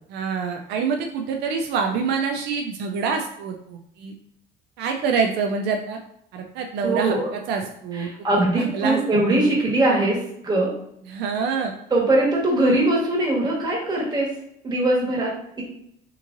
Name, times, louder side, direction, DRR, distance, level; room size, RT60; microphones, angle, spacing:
voice 1, 0.1-4.1 4.8-6.0 6.3-8.1 8.6-9.0 9.3-9.5 11.1-11.7, right 5 dB, 80° right, 3 dB, 0.5 m, -26 dB
voice 2, 6.8-7.3 7.9-10.7 11.9-14.4 14.6-15.6, right 1 dB, 25° right, -3 dB, 1.4 m, -21 dB
3.7 x 3.0 x 2.6 m, 0.71 s
cardioid pair, 110°, 17 cm